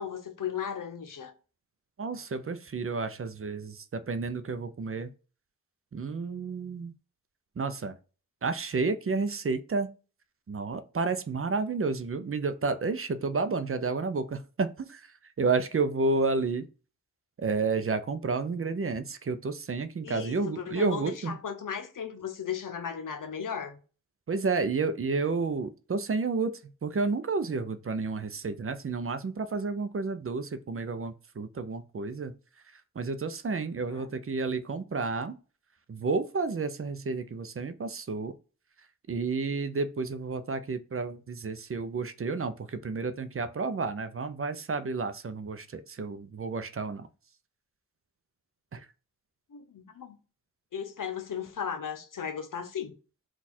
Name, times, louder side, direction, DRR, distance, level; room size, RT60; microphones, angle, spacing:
voice 1, 0.0-1.3 20.0-23.8 33.9-34.1 49.5-50.2 50.7-52.9, left 7 dB, 80° left, 0.7 m, -36 dB
voice 2, 2.0-5.1 5.9-6.9 7.6-7.9 8.4-9.9 10.5-15.1 15.4-16.7 17.4-21.4 24.3-26.5 26.8-32.4 33.0-35.4 35.9-38.3 39.1-47.1 48.7-48.8, right 4 dB, 45° right, 0.5 m, -31 dB
4.1 x 2.4 x 4.1 m
wide cardioid pair, 60°, 32 cm